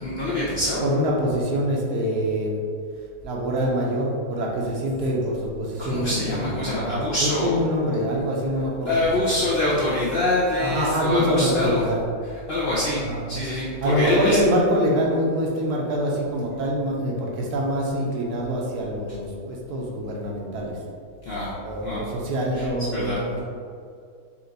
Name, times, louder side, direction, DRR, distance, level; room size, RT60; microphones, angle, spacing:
voice 1, 0.0-0.9 5.8-7.6 8.9-11.8 12.5-14.4 21.3-21.5 21.8-22.1 22.5-23.2, left 1 dB, 60° left, -7 dB, 0.6 m, -25 dB
voice 2, 0.8-2.6 3.2-9.4 10.6-12.0 13.1-13.2 13.8-20.7 21.6-23.4, equal, 75° right, -2 dB, 1.2 m, -25 dB
4.4 x 2.4 x 3.9 m, 2.2 s
omnidirectional pair, 1.7 m